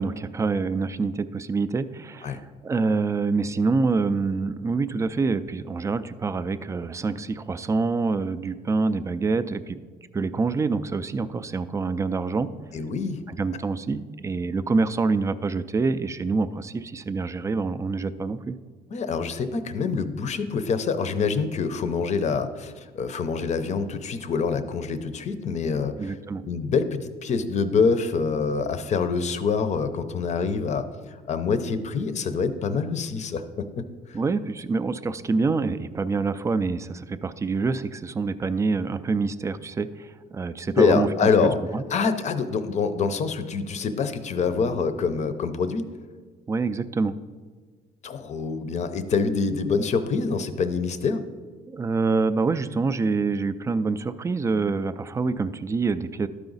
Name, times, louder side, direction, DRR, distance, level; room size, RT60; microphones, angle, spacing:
voice 1, 0.0-9.8 10.1-12.5 13.3-18.5 26.0-26.5 34.1-41.3 41.7-41.8 46.5-47.2 51.7-56.3, right 4 dB, 20° right, 13 dB, 0.3 m, -26 dB
voice 2, 12.7-13.2 18.9-26.1 26.5-33.4 33.8-33.9 34.1-34.2 40.8-41.5 41.9-45.8 48.0-51.2, left 5 dB, 45° left, 10 dB, 0.6 m, -25 dB
12.0 x 4.9 x 3.9 m, 1.5 s
cardioid pair, 110°, 17 cm